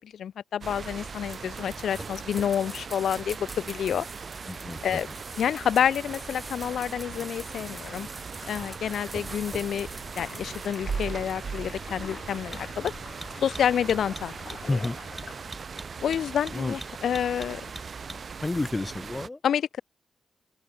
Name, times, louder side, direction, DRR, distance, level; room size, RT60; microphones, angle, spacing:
voice 1, 0.0-4.1 4.8-5.1 5.4-8.1 8.5-9.9 10.2-12.9 13.4-14.3 14.6-14.8 16.0-17.6 18.1-18.2 19.4-19.8, left 9 dB, 90° left, 0.4 m, -28 dB
sound 1, 0.6-19.3, right 5 dB, 45° right, 3.4 m, -39 dB
sound 2, 1.3-18.7, right 2 dB, 15° right, 3.9 m, -44 dB
voice 2, 4.5-5.0 14.7-15.0 16.5-16.8 18.4-19.4, left 2 dB, 15° left, 0.6 m, -30 dB
sound 3, 6.1-15.8, left 6 dB, 45° left, 7.3 m, -48 dB
wide cardioid pair, 160°, 0 cm